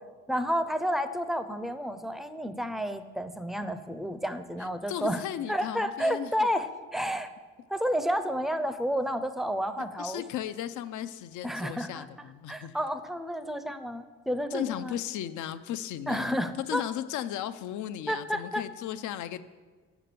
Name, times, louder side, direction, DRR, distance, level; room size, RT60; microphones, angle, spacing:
voice 1, 0.3-5.2 5.5-7.3 7.7-10.2 11.4-12.1 12.5-15.0 16.1-16.8 18.1-18.6, equal, ahead, 10 dB, 0.5 m, -31 dB
voice 2, 4.6-6.3 10.0-12.8 14.5-19.4, left 11 dB, 75° left, 13 dB, 0.5 m, -36 dB
6.6 x 6.0 x 6.7 m, 1.4 s
cardioid pair, 90°, 30 cm